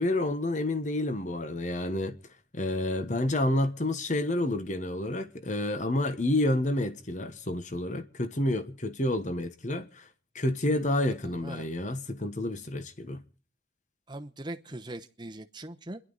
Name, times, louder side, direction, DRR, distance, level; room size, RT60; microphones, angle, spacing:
voice 1, 0.0-2.2 2.5-10.1 10.3-13.2, left 1 dB, 40° left, 1.2 m, -29 dB
voice 2, 11.3-11.7 14.1-16.0, right 1 dB, 25° right, 0.9 m, -41 dB
29.5 x 11.5 x 4.0 m
head